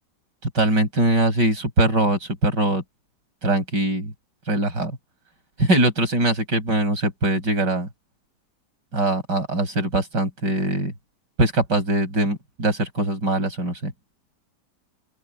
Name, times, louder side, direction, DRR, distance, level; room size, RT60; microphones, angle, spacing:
voice 1, 0.5-2.8 3.4-4.1 4.5-4.9 5.6-7.9 8.9-10.9 11.4-13.9, right 1 dB, 90° right, 7.9 m, -22 dB
open air
omnidirectional pair, 1.8 m